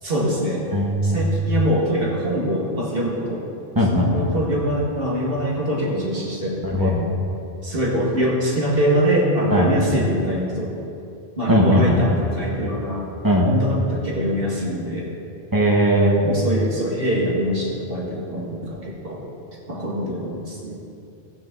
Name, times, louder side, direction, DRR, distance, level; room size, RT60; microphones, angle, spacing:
voice 1, 0.0-0.6 1.0-3.4 3.9-7.0 7.6-10.7 11.4-13.1 13.4-15.1 16.2-19.2 19.7-20.8, equal, 60° right, -4 dB, 2.2 m, -23 dB
voice 2, 0.7-1.2 3.7-4.3 6.6-7.1 9.5-9.7 11.5-12.3 13.2-13.5 15.5-16.2, equal, 20° right, -2 dB, 1.5 m, -19 dB
15.0 x 9.5 x 3.9 m, 2.7 s
omnidirectional pair, 1.1 m